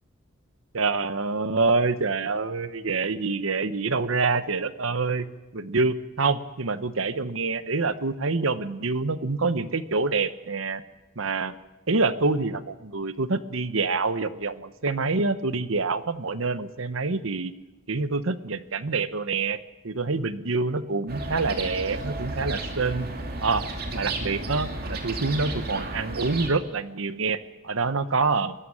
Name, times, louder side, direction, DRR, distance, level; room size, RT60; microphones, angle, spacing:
voice 1, 0.7-5.3 5.5-10.8 11.2-11.5 11.9-17.5 17.9-19.6 19.8-23.1 23.4-23.6 23.9-27.4 27.6-28.5, right 3 dB, 80° right, 13 dB, 1.0 m, -26 dB
sound 1, 21.1-26.5, right 2 dB, 45° right, 2.6 m, -33 dB
22.0 x 12.5 x 10.0 m, 1.1 s
head